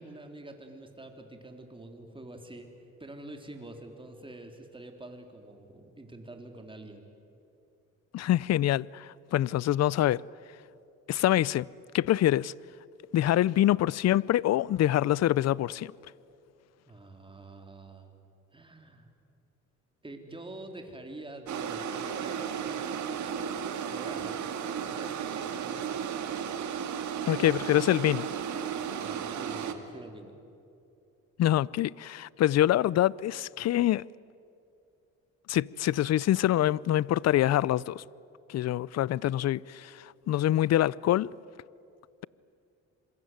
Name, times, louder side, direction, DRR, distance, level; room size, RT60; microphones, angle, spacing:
voice 1, 0.0-2.7 3.0-7.0 16.9-18.2 18.5-19.1 20.0-22.9 23.9-24.4 24.8-26.0 27.2-27.6 29.0-30.3, right 2 dB, 15° right, 3.9 m, -46 dB
voice 2, 8.1-10.2 11.1-11.7 11.9-12.5 13.1-15.9 27.3-28.3 31.4-34.0 35.5-38.0 38.5-41.3, left 13 dB, 60° left, 0.5 m, -25 dB
sound 1, 21.5-29.7, right 7 dB, 70° right, 2.1 m, -34 dB
27.0 x 23.0 x 9.5 m
cardioid pair, 90°, 30 cm